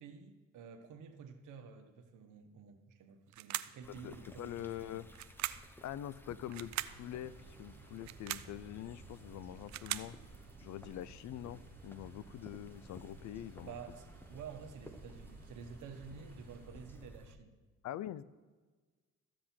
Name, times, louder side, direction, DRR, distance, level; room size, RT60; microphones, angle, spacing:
voice 1, 0.0-5.0 13.6-17.5, right 6 dB, 85° right, 6 dB, 1.2 m, -51 dB
sound 1, 3.3-3.8 5.1-5.7 6.5-7.0 8.0-8.5 9.4-10.1, right 14 dB, 65° right, 0.5 m, -40 dB
sound 2, 3.8-17.4, equal, 5° left, 0.9 m, -56 dB
voice 2, 3.9-5.1 5.8-7.3 7.6-10.2 10.6-13.8 17.8-18.2, left 12 dB, 70° left, 18 dB, 0.5 m, -44 dB
sound 3, 6.3-17.1, right 4 dB, 30° right, 1.7 m, -57 dB
13.5 x 7.6 x 4.4 m, 1.4 s
cardioid pair, 90°, 30 cm